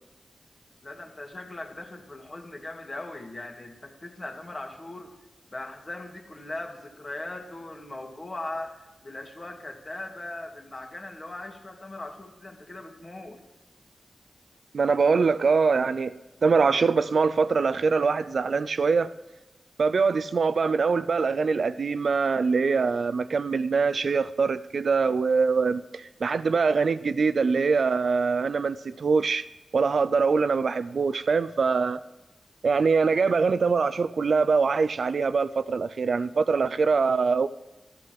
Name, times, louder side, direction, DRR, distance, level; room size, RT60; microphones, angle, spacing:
voice 1, 0.8-5.1 5.5-13.4, left 2 dB, 35° left, 2.2 m, -39 dB
voice 2, 14.7-19.1 19.8-29.5 29.7-32.0 32.6-37.5, right 4 dB, 70° right, 0.5 m, -23 dB
14.0 x 12.5 x 7.6 m
wide cardioid pair, 90°, 0 cm